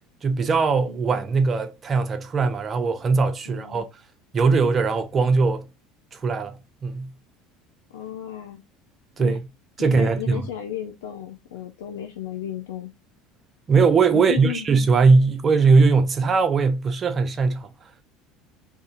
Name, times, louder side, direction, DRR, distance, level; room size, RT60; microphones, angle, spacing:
voice 1, 0.2-3.8 4.3-5.6 6.1-6.6 6.8-7.1 9.2-9.4 9.8-10.4 13.7-17.7, right 4 dB, 35° right, 0.5 m, -20 dB
voice 2, 3.5-3.8 7.9-8.6 9.2-9.4 9.8-12.9 14.1-14.7, left 10 dB, 90° left, 0.4 m, -34 dB
2.6 x 2.5 x 3.8 m
supercardioid pair, 90°, 0 cm